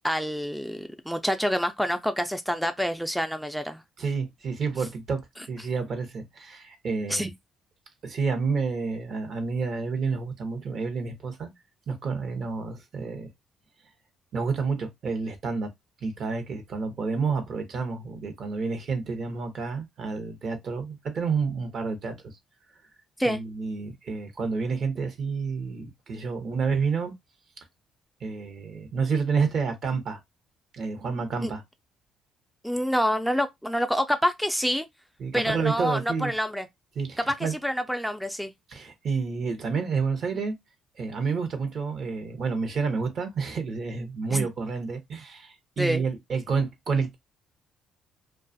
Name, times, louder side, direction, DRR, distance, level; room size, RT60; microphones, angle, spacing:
voice 1, 0.0-3.8 7.1-7.3 23.2-23.4 31.4-31.5 32.6-34.9 35.3-36.7 37.3-38.5 44.3-44.5 45.8-46.0, equal, ahead, 0.3 m, -27 dB
voice 2, 4.0-5.2 5.5-7.3 8.0-11.5 11.9-13.3 14.3-15.7 16.0-22.3 23.3-27.1 28.2-30.2 30.7-31.6 35.2-36.3 37.0-37.5 38.7-40.5 41.0-47.1, right 5 dB, 55° right, 0.8 m, -29 dB
2.4 x 2.3 x 2.5 m
cardioid pair, 80°, 0 cm